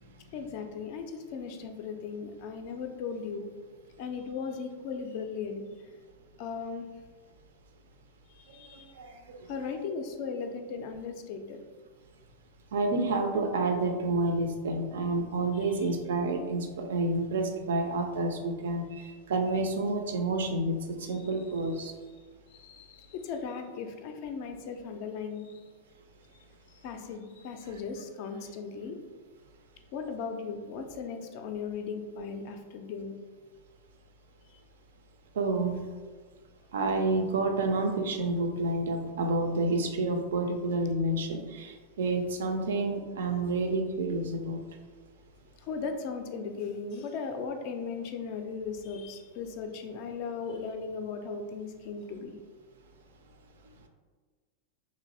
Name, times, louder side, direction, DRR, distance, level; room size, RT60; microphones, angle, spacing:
voice 1, 0.3-3.5 4.0-5.6 6.4-6.9 8.3-8.9 9.5-11.6 15.6-15.9 22.5-25.6 26.8-29.0 29.9-33.1 45.6-52.4, left 5 dB, 45° left, 5 dB, 0.3 m, -37 dB
voice 2, 9.0-9.4 12.7-21.9 35.4-35.8 36.7-44.6, right 2 dB, 60° right, 5 dB, 0.3 m, -29 dB
2.9 x 2.5 x 2.7 m, 1.5 s
figure-of-eight pair, 90°, 0 cm